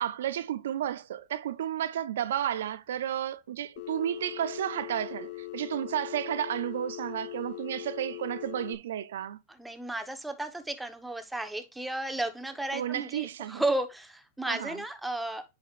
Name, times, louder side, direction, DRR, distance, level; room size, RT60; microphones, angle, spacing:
voice 1, 0.0-9.4 12.7-13.6 14.5-14.8, right 11 dB, 85° right, 0.4 m, -32 dB
Telephone, 3.8-8.8, left 19 dB, 55° left, 0.8 m, -41 dB
voice 2, 9.6-15.5, right 2 dB, 5° right, 1.0 m, -33 dB
10.0 x 4.9 x 2.4 m
supercardioid pair, 130°, 0 cm